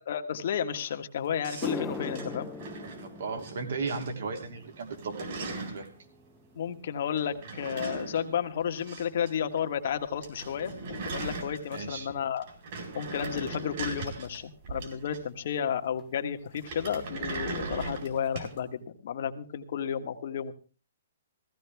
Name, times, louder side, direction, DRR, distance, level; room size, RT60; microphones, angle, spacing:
voice 1, 0.1-2.5 6.5-12.5 12.9-20.5, left 8 dB, 60° left, 7 dB, 1.5 m, -32 dB
sound 1, 0.9-1.0 1.4-9.9 10.2-10.6 11.4-11.5 14.2-14.3 16.0-16.1 16.3-16.5 16.8-17.3 17.7-17.8 18.4-18.5, left 3 dB, 5° left, 0.7 m, -43 dB
sound 2, 1.4-3.5 3.9-4.4 4.7-5.9 7.2-9.3 9.6-9.7 10.0-10.1 10.2-12.0 12.4-15.5 16.5-18.6, right 3 dB, 50° right, 4.5 m, -39 dB
voice 2, 3.0-5.9 11.7-12.1, right 4 dB, 70° right, 4 dB, 3.1 m, -36 dB
16.0 x 14.5 x 3.5 m, 0.37 s
hypercardioid pair, 150°, 0 cm